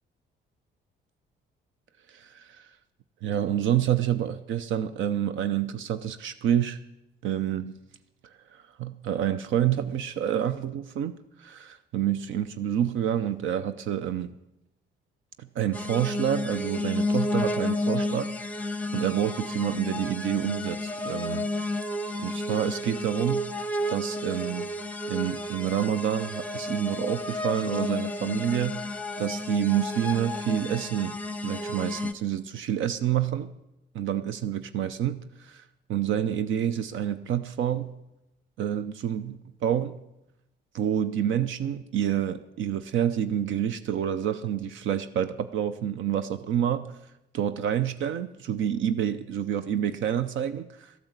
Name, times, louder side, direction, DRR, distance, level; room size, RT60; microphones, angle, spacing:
voice 1, 2.1-2.6 3.2-6.8 7.2-7.8 8.5-14.3 15.4-21.5 22.2-23.6 23.9-24.7 25.1-31.1 31.4-33.5 33.9-35.6 35.9-37.9 38.6-40.0 40.7-47.0 47.3-50.9, right 10 dB, 80° right, 12 dB, 0.6 m, -28 dB
sound 1, 15.7-32.1, left 2 dB, 5° left, 0.7 m, -31 dB
13.0 x 8.7 x 8.0 m, 0.88 s
cardioid pair, 90°, 20 cm